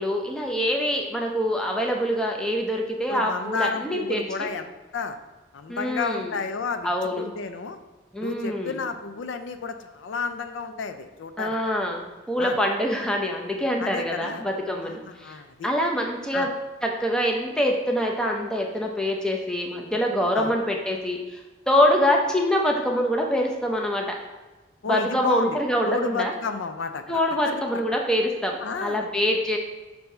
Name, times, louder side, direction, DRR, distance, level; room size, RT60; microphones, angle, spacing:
voice 1, 0.0-4.5 5.7-6.3 6.8-7.2 8.1-8.8 11.4-16.5 16.8-24.2 24.9-26.3 27.1-29.6, equal, 5° left, 1 dB, 0.5 m, -25 dB
voice 2, 3.1-5.2 5.5-6.9 7.2-7.8 8.2-11.6 12.4-12.6 13.8-14.4 14.8-15.7 16.3-16.5 20.3-20.5 24.8-25.6 25.8-27.2 28.6-29.1, left 4 dB, 80° left, 9 dB, 0.4 m, -31 dB
6.6 x 2.7 x 5.5 m, 1.2 s
head